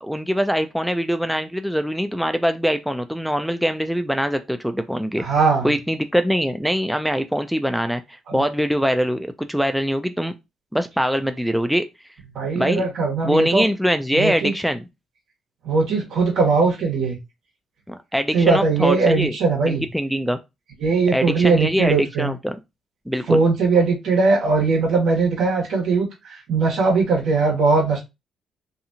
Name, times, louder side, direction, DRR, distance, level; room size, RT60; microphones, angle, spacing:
voice 1, 0.0-5.2 5.6-10.3 10.7-11.9 12.6-12.8 13.2-14.9 17.9-19.3 19.7-20.4 21.1-22.6 23.1-23.4, equal, ahead, 0.3 m, -23 dB
voice 2, 5.2-5.7 8.3-8.4 12.3-13.6 14.1-14.5 15.6-17.2 18.3-19.8 20.8-22.3 23.3-28.0, right 4 dB, 75° right, 1.3 m, -20 dB
2.7 x 2.4 x 2.7 m
cardioid pair, 90°, 0 cm